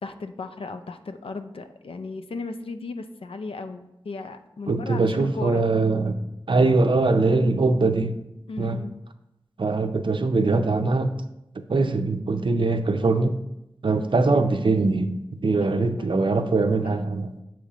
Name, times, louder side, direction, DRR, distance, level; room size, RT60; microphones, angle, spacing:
voice 1, 0.0-5.6 8.5-9.0 15.6-16.2 16.8-17.0, left 3 dB, 85° left, 9 dB, 0.4 m, -36 dB
voice 2, 4.7-6.2 6.5-8.1 8.6-8.8 9.6-11.1 11.7-13.4 13.8-17.3, right 3 dB, 65° right, 8 dB, 0.5 m, -22 dB
6.8 x 3.1 x 4.9 m, 0.87 s
wide cardioid pair, 75°, 9 cm